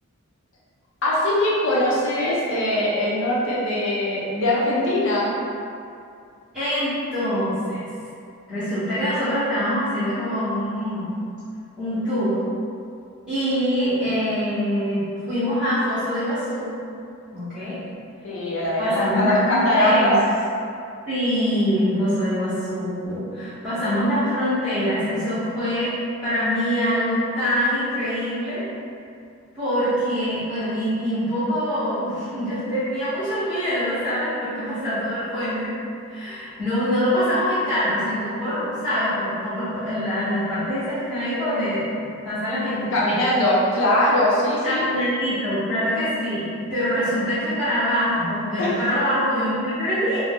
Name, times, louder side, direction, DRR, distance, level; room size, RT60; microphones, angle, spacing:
voice 1, 1.0-5.3 18.2-20.2 42.9-44.8 48.6-48.8, left 1 dB, 60° left, -7 dB, 0.7 m, -21 dB
voice 2, 6.5-7.9 8.5-11.1 11.8-12.4 13.3-16.7 17.3-17.8 18.8-20.1 21.1-25.9 26.2-28.6 29.5-35.8 36.1-41.9 42.2-43.2 44.6-50.2, equal, 5° right, -18 dB, 1.0 m, -24 dB
2.6 x 2.2 x 3.5 m, 2.4 s
head